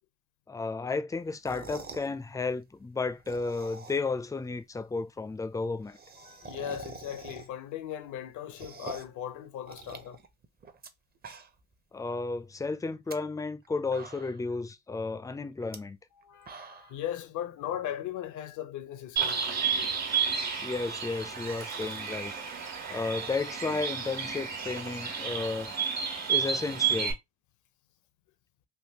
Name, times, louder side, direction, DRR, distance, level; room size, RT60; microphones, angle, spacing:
voice 1, 0.5-6.0 11.9-16.0 20.6-22.3 22.9-25.7 26.3-27.1, left 3 dB, 10° left, 0.4 m, -33 dB
sound 1, 1.3-2.1 3.1-4.2 4.5-4.6 4.9-5.0 5.2-5.3 5.5-7.7 8.1-9.2 9.7-10.9 11.2-11.7 12.1-12.2 12.9-13.1 13.6-13.7 13.9-14.5 15.6-15.8 16.2-17.0, right 4 dB, 30° right, 0.6 m, -45 dB
voice 2, 6.2-10.2 16.2-19.4 26.2-26.3, left 11 dB, 75° left, 0.6 m, -38 dB
Bird, 19.2-27.1, right 7 dB, 65° right, 1.4 m, -31 dB
3.5 x 2.5 x 2.8 m
cardioid pair, 90°, 30 cm